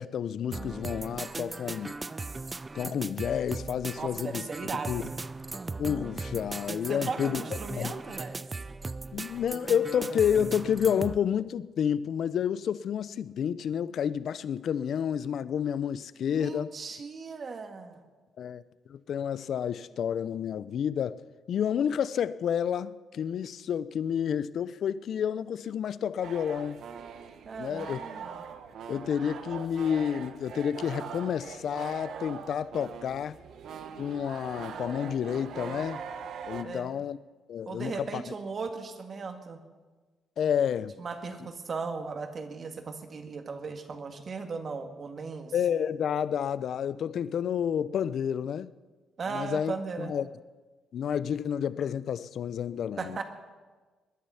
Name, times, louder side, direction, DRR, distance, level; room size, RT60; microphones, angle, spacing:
voice 1, 0.0-1.9 2.7-4.5 4.9-5.0 5.8-7.4 7.7-7.9 9.1-16.7 18.4-18.6 18.9-21.2 21.5-26.8 27.6-28.0 28.9-33.4 34.0-36.0 36.5-37.2 37.5-38.2 40.4-40.9 45.5-48.7 49.3-50.3 50.9-53.2, left 8 dB, 65° left, 0.5 m, -30 dB
sound 1, 0.5-11.2, right 3 dB, 25° right, 0.5 m, -38 dB
voice 2, 4.0-5.1 6.9-8.4 16.3-18.0 27.5-28.4 36.6-37.0 37.7-39.6 41.0-45.5 49.2-50.1 53.0-53.2, right 4 dB, 45° right, 1.8 m, -37 dB
sound 2, 26.2-36.6, right 7 dB, 70° right, 1.1 m, -42 dB
21.0 x 10.5 x 5.7 m
cardioid pair, 90°, 0 cm